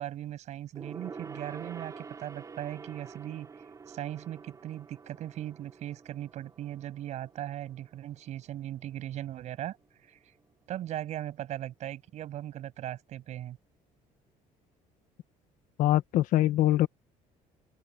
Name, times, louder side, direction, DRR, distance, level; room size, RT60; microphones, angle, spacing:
voice 1, 0.0-3.5 3.9-9.8 10.0-10.4 10.7-13.6, right 12 dB, 50° right, 7.5 m, -38 dB
Gong, 0.7-10.5 10.8-11.1 11.4-11.5, right 5 dB, 20° right, 6.2 m, -48 dB
voice 2, 15.8-16.9, left 14 dB, 60° left, 1.1 m, -23 dB
cardioid pair, 170°, 15 cm